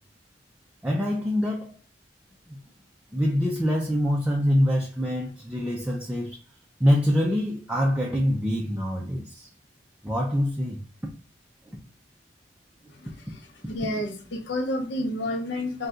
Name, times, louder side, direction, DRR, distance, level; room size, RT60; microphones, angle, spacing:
voice 1, 0.8-1.8 2.5-2.6 3.1-6.4 6.8-9.5 10.0-10.8 11.7-11.8 12.8-12.9, equal, 10° right, 0.4 m, -25 dB
voice 2, 12.9-13.4 13.7-15.9, left 1 dB, 75° left, 0.7 m, -30 dB
2.7 x 2.3 x 3.6 m
head